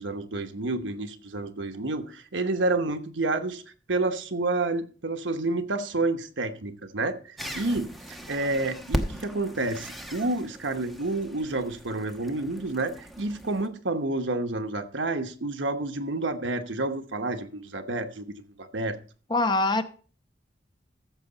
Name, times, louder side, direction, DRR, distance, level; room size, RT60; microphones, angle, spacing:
voice 1, 0.0-3.6 3.9-19.0, right 2 dB, 85° right, 1.1 m, -29 dB
sound 1, 7.4-13.7, equal, ahead, 1.0 m, -37 dB
voice 2, 19.3-19.8, left 2 dB, 25° left, 0.7 m, -23 dB
14.5 x 6.8 x 4.0 m
head